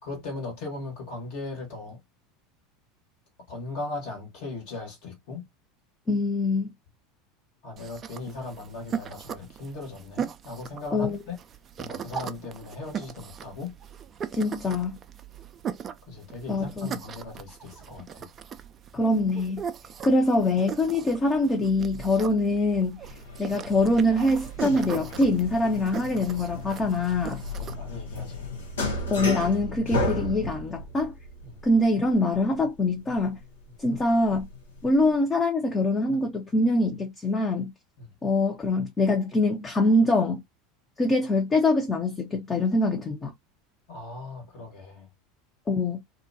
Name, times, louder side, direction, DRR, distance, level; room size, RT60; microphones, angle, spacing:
voice 1, 0.0-2.0 3.5-5.4 7.6-11.4 11.8-13.7 16.1-18.3 27.6-28.5 31.4-31.6 38.0-38.1 43.9-45.1, left 3 dB, 60° left, 1.3 m, -38 dB
voice 2, 6.1-6.7 10.9-11.2 14.3-14.9 16.5-16.9 18.9-19.6 20.0-23.0 23.4-27.4 29.1-31.1 31.6-33.4 33.8-34.5 34.8-37.7 38.2-40.4 41.0-43.3 45.7-46.0, left 2 dB, 25° left, 0.7 m, -24 dB
sound 1, 7.8-27.7, right 8 dB, 35° right, 0.4 m, -39 dB
sound 2, 23.0-35.2, left 2 dB, 80° left, 0.8 m, -35 dB
2.4 x 2.2 x 2.6 m
hypercardioid pair, 80°, 0 cm